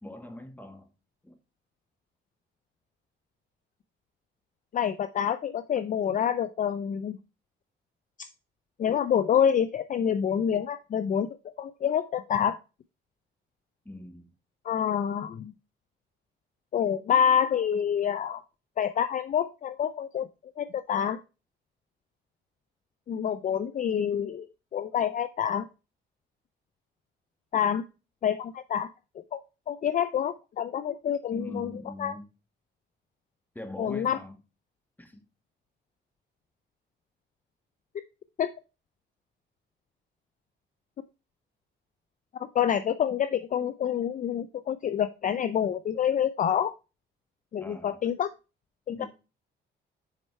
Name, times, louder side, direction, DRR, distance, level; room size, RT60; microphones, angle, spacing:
voice 1, 0.0-0.9 1.2-1.4 13.8-14.3 31.3-32.3 33.5-34.3 35.0-35.2 47.6-48.0 48.9-49.1, left 1 dB, 10° left, 1.5 m, -42 dB
voice 2, 4.7-7.2 8.8-11.3 11.6-12.6 14.6-15.5 16.7-18.4 18.8-20.3 20.6-21.2 23.1-24.5 24.7-25.7 27.5-27.8 28.2-28.9 29.3-29.4 29.7-31.7 32.0-32.1 33.8-34.2 38.4-38.5 42.4-46.7 47.5-48.3 48.9-49.1, left 8 dB, 40° left, 0.4 m, -27 dB
6.5 x 4.2 x 4.4 m
cardioid pair, 90°, 20 cm